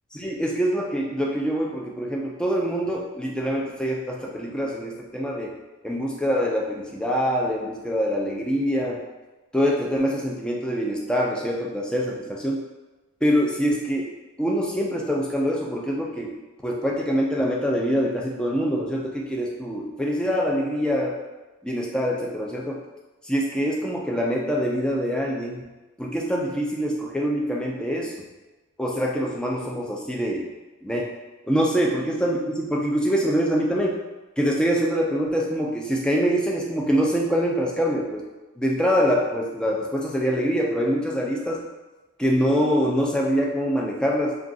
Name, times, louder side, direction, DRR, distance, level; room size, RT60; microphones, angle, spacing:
voice 1, 0.1-5.5 5.8-9.0 9.5-12.6 13.2-14.1 14.4-16.4 16.6-21.2 21.6-22.8 23.2-25.6 26.0-28.3 28.8-30.5 30.8-31.1 31.5-34.0 34.4-38.3 38.6-41.6 42.2-44.4, equal, 5° left, -2 dB, 0.3 m, -24 dB
2.5 x 2.3 x 3.7 m, 1.1 s
head